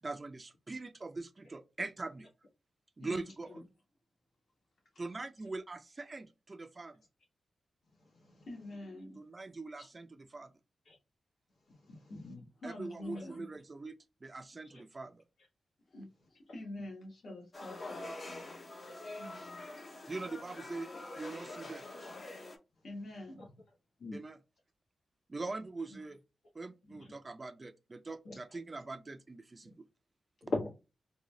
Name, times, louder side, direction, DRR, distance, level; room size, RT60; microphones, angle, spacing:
voice 1, 0.0-2.3 3.0-3.6 5.0-7.0 9.1-10.5 12.6-15.2 20.1-20.9 21.2-21.9 24.1-24.4 25.3-26.2 26.5-26.7 27.1-29.7, right 3 dB, 30° right, 0.4 m, -42 dB
voice 2, 3.0-3.6 8.5-9.2 12.6-13.5 15.9-18.6 19.1-19.6 22.8-23.5, left 1 dB, 60° left, 1.4 m, -46 dB
voice 3, 11.9-12.5 14.6-14.8 23.4-23.5 24.0-24.2 28.3-28.4 30.5-30.7, left 2 dB, 75° left, 1.3 m, -38 dB
sound 1, 17.5-22.6, left 2 dB, 40° left, 0.8 m, -45 dB
3.6 x 2.4 x 3.2 m
wide cardioid pair, 120°, 0 cm